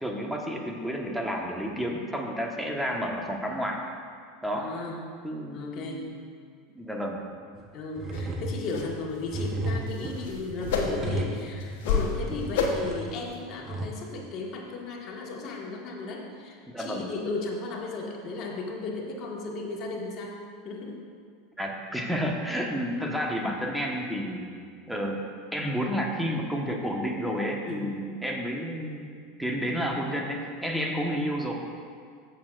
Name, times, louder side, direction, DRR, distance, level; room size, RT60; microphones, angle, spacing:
voice 1, 0.0-3.8 4.4-4.7 5.2-6.2 6.7-7.3 16.7-17.1 21.6-24.5 24.9-25.2 25.5-29.1 29.4-31.5, equal, ahead, 0 dB, 1.3 m, -31 dB
voice 2, 4.5-5.0 5.5-6.0 7.7-20.4 20.6-21.0 27.6-27.9, left 3 dB, 45° left, -1 dB, 1.7 m, -35 dB
sound 1, 7.5-7.6 7.9-13.9, right 1 dB, 30° right, 1.2 m, -34 dB
sound 2, 8.1-8.3 8.7-8.9 9.2-9.5 9.9-11.2 11.6-12.2 12.5-12.9 13.3-13.4, left 5 dB, 65° left, 1.2 m, -29 dB
14.5 x 6.6 x 2.6 m, 2.1 s
hypercardioid pair, 85°, 0 cm